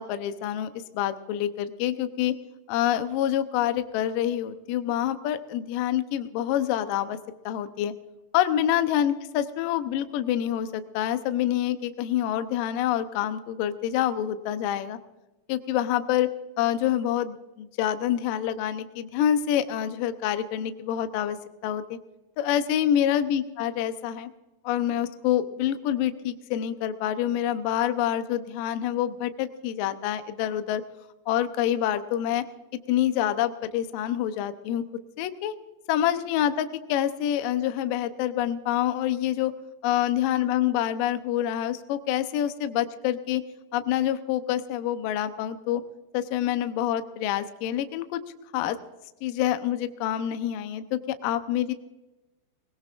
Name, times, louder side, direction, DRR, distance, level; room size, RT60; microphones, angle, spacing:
voice 1, 0.0-2.4 2.7-7.2 7.5-7.9 8.3-15.0 15.5-16.3 16.6-21.4 21.6-22.0 22.4-24.3 24.6-30.8 31.3-32.4 32.9-34.8 35.2-35.5 35.9-39.5 39.8-43.4 43.7-45.8 46.1-48.2 48.5-48.8 49.2-51.7, left 11 dB, 85° left, 9 dB, 1.9 m, -27 dB
21.0 x 20.0 x 2.5 m, 1.0 s
omnidirectional pair, 5.1 m